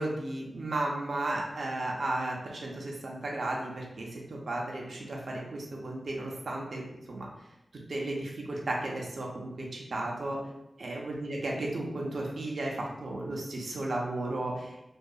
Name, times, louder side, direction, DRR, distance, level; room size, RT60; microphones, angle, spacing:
voice 1, 0.0-6.8 7.1-7.3 7.9-10.4 10.8-14.7, right 2 dB, 70° right, -2 dB, 0.5 m, -34 dB
2.7 x 2.4 x 2.3 m, 0.90 s
wide cardioid pair, 105°, 0 cm